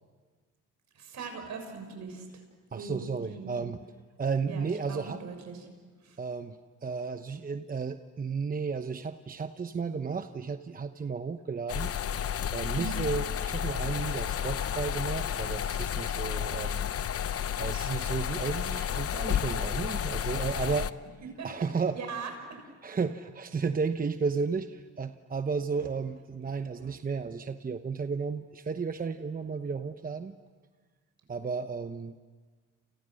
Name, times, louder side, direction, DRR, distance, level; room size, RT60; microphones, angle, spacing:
voice 1, 0.9-2.4 2.7-3.5 4.5-5.7 6.0-6.2 12.8-13.0 21.4-21.5 21.9-22.3, right 4 dB, 65° right, 5 dB, 6.5 m, -40 dB
voice 2, 2.7-3.8 4.2-5.2 6.2-11.9 12.5-16.8 17.6-20.9 21.4-22.0 22.8-30.3 31.3-32.2, right 5 dB, 30° right, 8 dB, 1.0 m, -33 dB
sound 1, 11.7-20.9, left 9 dB, 50° left, 0.8 m, -31 dB
30.0 x 29.5 x 6.5 m, 1.5 s
cardioid pair, 90°, 30 cm